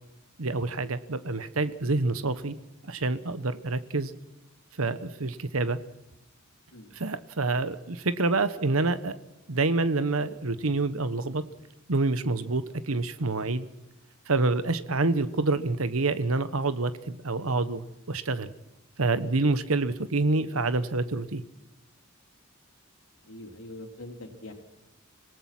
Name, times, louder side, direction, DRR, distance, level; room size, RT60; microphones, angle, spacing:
voice 1, 0.4-2.5 2.8-4.1 4.8-5.8 6.9-9.2 9.5-11.4 11.9-13.7 14.3-18.5 19.0-21.4, right 3 dB, 90° right, 12 dB, 1.2 m, -27 dB
voice 2, 23.2-24.5, left 1 dB, 85° left, 3 dB, 3.9 m, -43 dB
26.0 x 18.5 x 6.1 m, 0.97 s
head